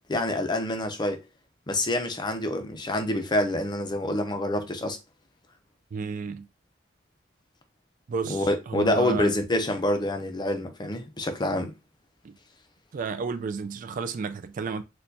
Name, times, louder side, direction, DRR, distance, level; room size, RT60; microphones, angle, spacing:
voice 1, 0.1-1.2 1.7-5.0 8.3-11.7, left 1 dB, 25° left, 0.5 m, -27 dB
voice 2, 5.9-6.5 8.1-9.3 12.2-12.4 12.9-14.8, right 5 dB, 45° right, 0.3 m, -32 dB
4.3 x 2.2 x 2.6 m
head